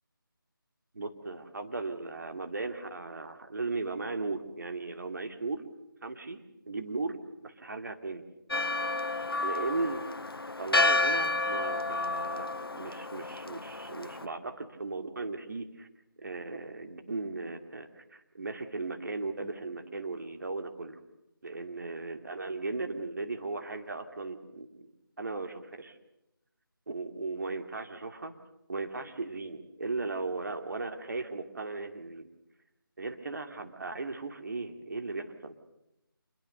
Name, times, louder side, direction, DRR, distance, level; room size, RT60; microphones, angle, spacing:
voice 1, 0.9-5.6 6.0-8.2 9.4-10.0 10.6-15.9 16.2-21.0 21.4-24.9 25.2-26.0 26.9-28.3 28.7-32.3 33.0-35.6, right 3 dB, 50° right, 6 dB, 2.6 m, -37 dB
Church bell, 8.5-14.3, left 2 dB, 85° left, 1.0 m, -30 dB
27.0 x 22.0 x 6.7 m, 0.89 s
figure-of-eight pair, 165°, 12 cm